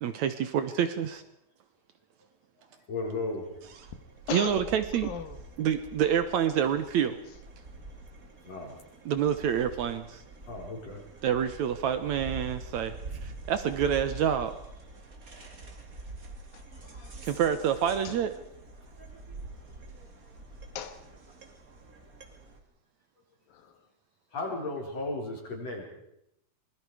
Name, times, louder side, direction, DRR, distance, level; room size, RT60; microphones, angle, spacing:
voice 1, 0.0-1.2 4.3-5.1 5.6-7.2 9.1-10.2 11.2-12.9 13.2-14.5 17.2-18.3, right 9 dB, 70° right, 10 dB, 2.0 m, -27 dB
voice 2, 2.9-3.5 8.4-8.8 10.5-11.0 24.3-25.9, left 2 dB, 45° left, 1 dB, 5.5 m, -35 dB
sound 1, 3.0-22.6, right 2 dB, 30° right, 2.3 m, -45 dB
voice 3, 4.3-4.6 5.0-5.4 16.5-17.3 18.0-18.2 20.7-21.0 23.5-23.9, left 8 dB, 80° left, 10 dB, 3.2 m, -39 dB
26.0 x 21.0 x 4.9 m, 0.80 s
omnidirectional pair, 4.0 m